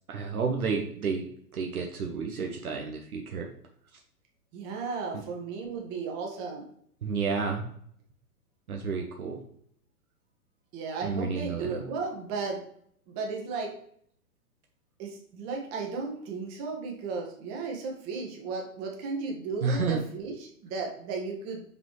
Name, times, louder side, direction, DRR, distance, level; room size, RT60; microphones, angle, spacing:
voice 1, 0.1-3.5 7.0-7.6 8.7-9.4 11.0-11.8 19.6-20.0, right 5 dB, 65° right, 2 dB, 1.1 m, -31 dB
voice 2, 4.5-6.7 10.7-12.6 13.1-13.7 15.0-21.6, right 4 dB, 30° right, 0 dB, 1.7 m, -35 dB
6.0 x 5.2 x 3.1 m, 0.65 s
figure-of-eight pair, 115°, 46 cm